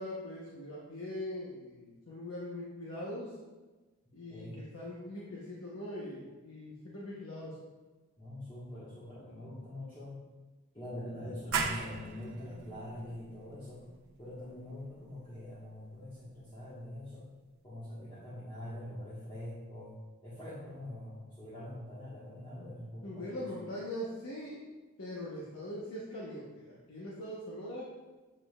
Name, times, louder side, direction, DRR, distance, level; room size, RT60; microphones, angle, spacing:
voice 1, 0.0-3.3 4.1-7.6 23.0-24.6 25.0-27.9, left 1 dB, 70° left, -5 dB, 1.1 m, -41 dB
voice 2, 4.3-4.6 8.2-10.2 10.7-13.9 14.2-17.3 17.6-20.0 20.2-23.5, left 1 dB, 20° left, -12 dB, 1.5 m, -44 dB
sound 1, 11.5-16.9, right 5 dB, 65° right, 0.7 m, -40 dB
7.5 x 7.4 x 2.4 m, 1.2 s
head